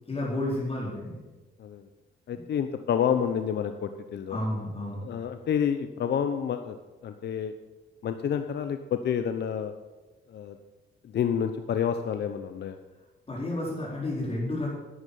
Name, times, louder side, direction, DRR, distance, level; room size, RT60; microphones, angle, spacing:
voice 1, 0.1-1.2 4.3-5.1 13.3-14.7, left 1 dB, 30° left, -5 dB, 4.5 m, -31 dB
voice 2, 2.3-4.4 5.0-6.7 7.0-7.5 8.0-9.7 10.3-10.6 11.0-12.8, left 8 dB, 60° left, 8 dB, 0.8 m, -29 dB
11.0 x 9.9 x 6.9 m, 1.2 s
cardioid pair, 90°, 20 cm